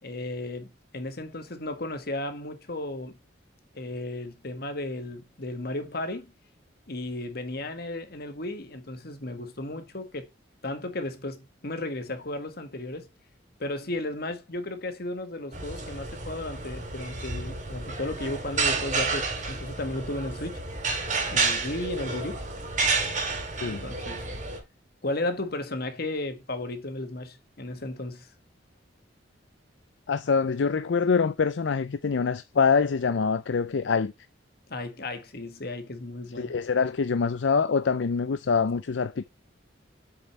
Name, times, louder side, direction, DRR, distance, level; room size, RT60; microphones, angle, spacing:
voice 1, 0.0-3.1 3.7-6.3 6.9-10.3 10.6-13.1 13.6-20.6 21.3-22.4 23.7-24.3 25.0-28.3 34.7-36.6, left 2 dB, 55° left, 1.8 m, -34 dB
sound 1, 15.5-24.6, right 4 dB, 45° right, 3.3 m, -30 dB
voice 2, 30.1-34.1 36.4-39.2, left 5 dB, 70° left, 0.5 m, -25 dB
7.7 x 6.8 x 3.2 m
head